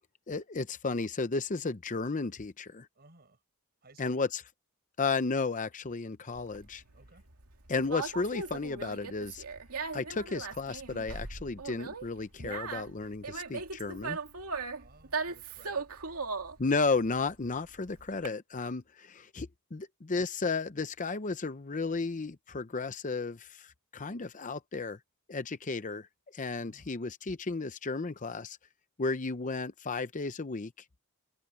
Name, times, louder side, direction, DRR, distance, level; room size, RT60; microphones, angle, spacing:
voice 1, 0.3-2.9 4.0-4.4 5.0-6.8 7.7-9.4 9.9-14.2 16.6-25.0 25.3-26.1 26.3-28.6 29.0-30.7, left 4 dB, 35° left, 0.7 m, -33 dB
voice 2, 3.0-3.4 3.8-4.2 6.9-7.3 14.7-16.2 26.6-26.9, right 3 dB, 45° right, 6.9 m, -59 dB
Conversation, 6.3-18.3, right 4 dB, 80° right, 2.4 m, -39 dB
head